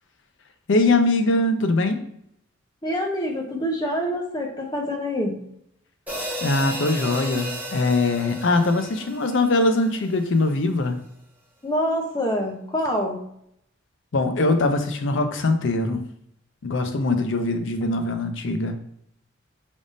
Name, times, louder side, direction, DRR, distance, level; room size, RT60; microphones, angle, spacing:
voice 1, 0.7-2.0 6.4-11.0 14.1-16.0 16.6-18.8, left 2 dB, 60° left, 7 dB, 0.5 m, -22 dB
voice 2, 2.8-5.4 11.6-13.2, equal, 20° left, 1 dB, 0.7 m, -26 dB
sound 1, 6.1-10.4, equal, 10° right, 1.0 m, -34 dB
5.0 x 3.5 x 2.6 m, 0.72 s
head